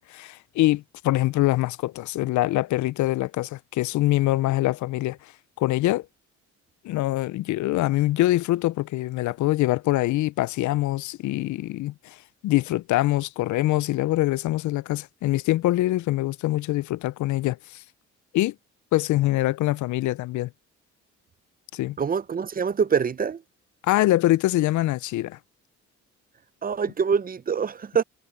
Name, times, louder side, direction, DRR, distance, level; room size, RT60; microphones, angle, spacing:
voice 1, 0.0-5.2 5.6-6.1 6.8-12.2 12.4-17.8 18.3-18.5 18.9-20.5 21.7-22.0 23.8-25.4, left 16 dB, 75° left, 0.5 m, -24 dB
voice 2, 22.0-23.4 26.6-28.0, right 6 dB, 30° right, 0.6 m, -25 dB
cardioid pair, 90°, 30 cm